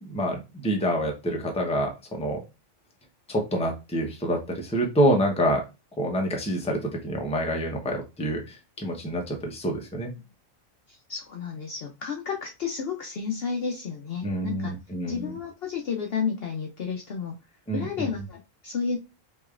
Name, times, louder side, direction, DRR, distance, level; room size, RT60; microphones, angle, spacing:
voice 1, 0.0-2.4 3.3-5.6 6.0-10.1 14.2-15.4 17.7-18.1, equal, 5° left, 2 dB, 0.7 m, -27 dB
voice 2, 10.9-14.7 15.1-17.4 17.7-19.0, left 6 dB, 60° left, 2 dB, 0.7 m, -31 dB
4.8 x 3.0 x 2.4 m, 0.26 s
omnidirectional pair, 1.4 m